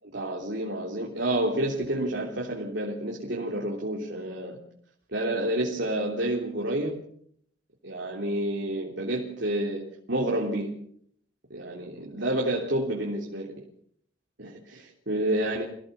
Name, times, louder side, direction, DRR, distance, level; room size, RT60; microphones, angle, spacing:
voice 1, 0.0-4.6 5.1-7.0 7.8-9.8 10.1-10.8 11.5-13.5 14.4-15.6, right 1 dB, 60° right, -1 dB, 3.4 m, -29 dB
26.0 x 17.0 x 7.1 m, 0.66 s
head